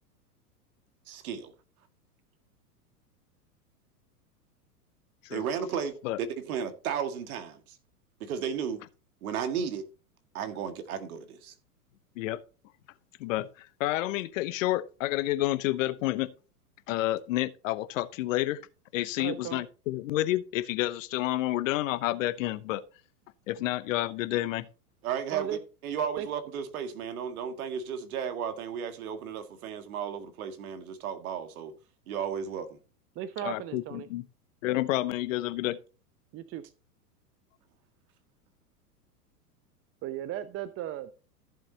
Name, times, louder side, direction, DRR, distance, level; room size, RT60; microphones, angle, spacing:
voice 1, 1.1-1.5 5.3-7.8 8.2-8.8 9.2-9.8 10.3-11.5 25.0-31.7 32.1-32.8, right 7 dB, 65° right, 2.0 m, -34 dB
voice 2, 13.2-16.3 16.9-18.6 18.9-22.8 23.5-24.6 33.4-34.2 34.6-35.8, left 16 dB, 55° left, 1.0 m, -29 dB
voice 3, 19.2-19.6 25.3-25.6 26.2-26.3 33.2-34.1 36.3-36.6 40.0-41.1, right 11 dB, 30° right, 0.7 m, -36 dB
14.0 x 7.6 x 2.9 m
hypercardioid pair, 105°, 46 cm